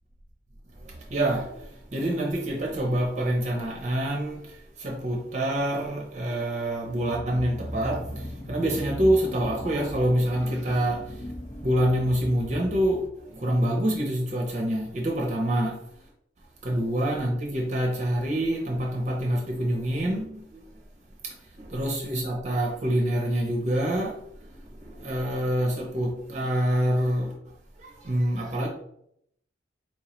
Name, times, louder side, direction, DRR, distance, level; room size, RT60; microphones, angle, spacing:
voice 1, 0.8-11.3 11.6-15.8 16.6-20.6 21.2-27.3 27.8-28.7, right 1 dB, 40° right, 0.7 m, -26 dB
sound 1, 6.8-13.3, equal, 30° left, 0.6 m, -38 dB
4.4 x 3.1 x 2.8 m
head